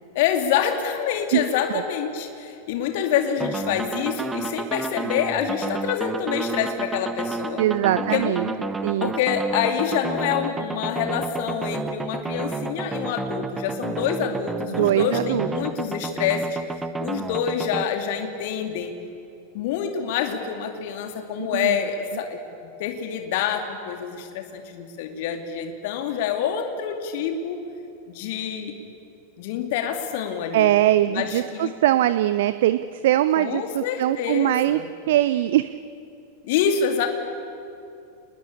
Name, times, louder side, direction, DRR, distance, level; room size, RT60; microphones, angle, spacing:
voice 1, 0.1-7.6 8.0-8.6 9.0-16.6 17.0-18.9 19.5-22.4 22.8-27.6 28.1-28.7 29.4-30.7 31.1-31.7 33.4-34.9 36.4-37.1, left 8 dB, 50° left, 5 dB, 2.5 m, -26 dB
sound 1, 3.4-17.8, right 4 dB, 10° right, 0.9 m, -31 dB
voice 2, 7.6-8.5 8.8-9.1 14.7-15.5 21.4-21.8 30.5-34.8 35.1-35.7, right 13 dB, 55° right, 13 dB, 0.6 m, -21 dB
28.5 x 21.0 x 8.6 m, 2.6 s
figure-of-eight pair, 90°, 0 cm